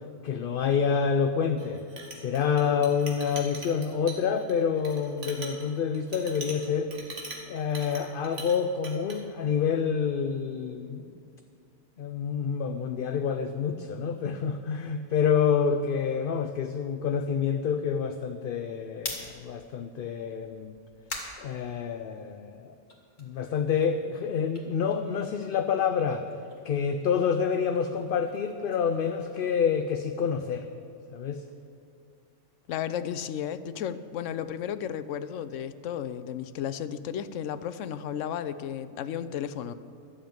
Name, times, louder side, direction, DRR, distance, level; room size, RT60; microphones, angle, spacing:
voice 1, 0.2-1.8 2.2-6.9 7.5-11.1 12.0-20.8 21.4-22.8 23.2-26.2 26.6-30.6 31.1-31.4, left 6 dB, 60° left, 8 dB, 0.6 m, -28 dB
Chink clink, 1.6-8.6 8.8-9.2, right 3 dB, 75° right, 2.1 m, -42 dB
sound 1, 19.0-22.4 22.8-25.7 26.0-30.1, left 2 dB, 40° left, 2.0 m, -45 dB
voice 2, 32.7-39.7, left 9 dB, 85° left, 13 dB, 1.0 m, -33 dB
12.5 x 7.1 x 8.9 m, 2.4 s
omnidirectional pair, 1.3 m